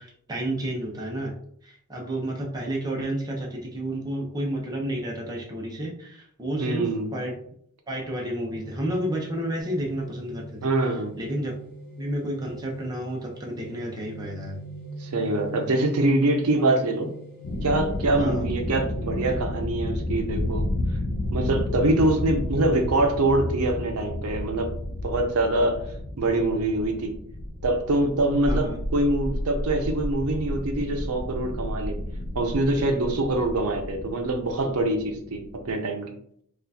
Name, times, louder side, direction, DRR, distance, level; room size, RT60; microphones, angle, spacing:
voice 1, 0.0-1.3 1.6-7.4 7.9-10.7 11.2-11.5 12.0-14.6 16.6-16.8 18.2-18.5 28.5-28.8, right 1 dB, 20° right, -2 dB, 0.6 m, -31 dB
voice 2, 6.6-7.1 10.6-11.1 15.0-17.1 17.6-20.7 21.3-24.7 25.0-25.8 26.2-27.1 27.6-32.0 32.3-36.1, right 2 dB, 75° right, 4 dB, 0.6 m, -24 dB
sound 1, 8.5-27.7, equal, 45° right, 1.3 m, -44 dB
sound 2, 17.4-35.8, left 1 dB, 55° left, 0.5 m, -31 dB
4.3 x 2.4 x 2.7 m, 0.67 s
head